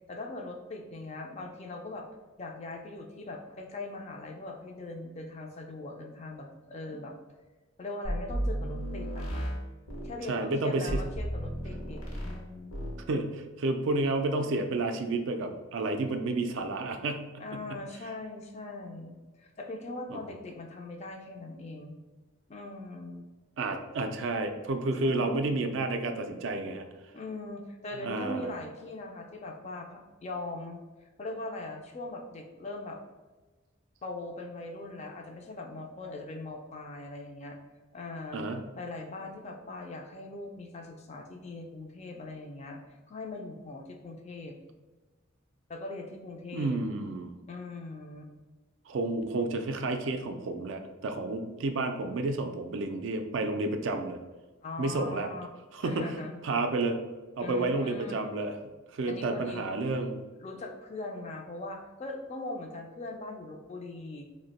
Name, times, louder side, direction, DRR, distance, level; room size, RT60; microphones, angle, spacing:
voice 1, 0.1-2.1 2.4-7.1 7.8-9.5 10.0-12.8 17.4-22.0 22.5-23.3 25.0-25.6 27.1-33.0 34.0-37.6 37.9-38.4 38.7-42.8 43.1-44.6 45.7-46.8 47.5-48.3 54.6-55.5 55.8-56.4 57.4-58.2 59.1-59.7 60.4-64.3, left 2 dB, 30° left, 2 dB, 0.3 m, -40 dB
sound 1, 8.0-10.2 10.9-12.4 12.7-13.0, equal, 80° left, 0.8 m, -34 dB
voice 2, 10.3-11.0 13.1-17.8 20.1-20.2 23.6-26.9 28.0-28.5 38.3-38.6 46.5-47.4 48.9-54.2 54.8-55.3 55.7-56.2 56.4-57.0 57.4-58.6 58.9-60.2, right 2 dB, 60° right, 6 dB, 0.3 m, -31 dB
2.8 x 2.1 x 4.0 m, 1.2 s
head